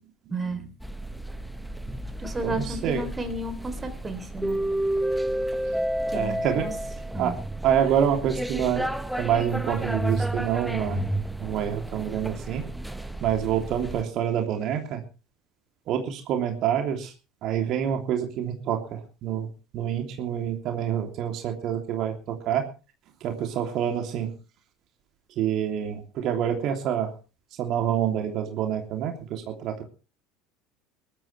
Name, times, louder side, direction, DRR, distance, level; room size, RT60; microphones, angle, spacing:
voice 1, 0.3-0.6 2.2-4.6 6.1-6.7 7.1-7.3, right 2 dB, 20° right, 9 dB, 3.5 m, -32 dB
sound 1, 0.8-14.0, right 1 dB, ahead, 1.3 m, -31 dB
voice 2, 2.4-3.0 6.1-6.7 7.2-7.4 7.6-8.9 9.2-11.0 11.4-12.6 13.2-15.0 15.9-17.1 17.4-19.5 19.7-22.7 23.2-24.3 25.4-27.1 27.6-29.8, right 9 dB, 55° right, 3 dB, 3.1 m, -27 dB
21.5 x 13.0 x 3.4 m, 0.34 s
hypercardioid pair, 70°, 0 cm